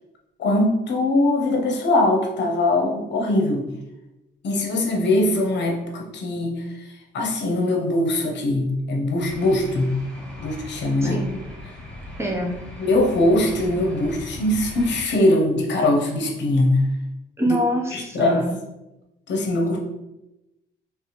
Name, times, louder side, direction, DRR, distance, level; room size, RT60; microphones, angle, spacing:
voice 1, 0.4-3.6 4.4-6.9 7.1-9.9 10.4-11.2 12.8-16.8 17.5-17.6 17.9-18.5 19.3-19.8, left 1 dB, 65° left, 1 dB, 0.8 m, -21 dB
sound 1, 9.2-15.0, left 1 dB, 5° left, 1.4 m, -39 dB
voice 2, 11.0-11.4 12.2-12.5 17.4-18.5, equal, 15° right, -1 dB, 0.8 m, -25 dB
3.4 x 3.1 x 3.0 m, 0.95 s
cardioid pair, 90°, 20 cm